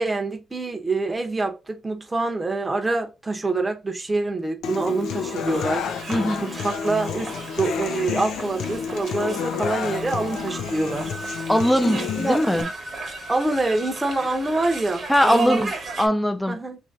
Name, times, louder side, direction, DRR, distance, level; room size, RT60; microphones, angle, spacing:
voice 1, 0.0-6.1 6.4-11.5 11.8-12.4 13.3-15.7 16.5-16.8, right 3 dB, 20° right, 0.9 m, -26 dB
Human voice / Acoustic guitar, 4.6-12.6, left 7 dB, 75° left, 0.4 m, -30 dB
sound 1, 4.9-16.1, right 3 dB, 50° right, 1.1 m, -35 dB
voice 2, 6.1-6.4 11.5-12.7 15.1-16.6, equal, 5° left, 0.6 m, -21 dB
3.0 x 2.7 x 3.6 m
cardioid pair, 90°, 0 cm